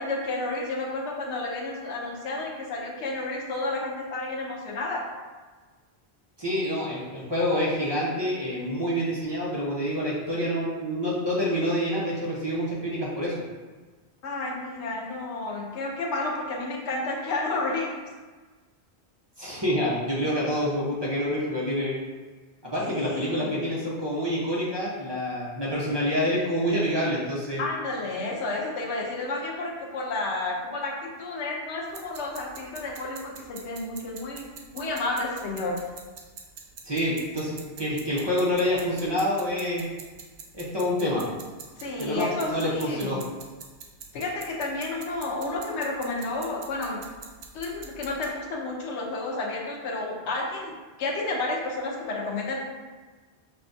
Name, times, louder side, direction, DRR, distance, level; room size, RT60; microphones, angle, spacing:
voice 1, 0.0-5.0 14.2-18.0 22.9-23.6 27.6-34.5 34.7-35.8 41.8-43.2 44.1-47.0 47.5-50.7 51.0-52.6, left 2 dB, 90° left, 0 dB, 1.0 m, -31 dB
voice 2, 6.4-13.3 19.4-22.0 22.6-27.6 36.8-39.8 40.5-41.2 42.0-43.2, equal, 25° right, -7 dB, 0.8 m, -27 dB
sound 1, 31.9-48.3, right 5 dB, 70° right, 0.8 m, -46 dB
5.6 x 2.3 x 2.6 m, 1.4 s
omnidirectional pair, 1.1 m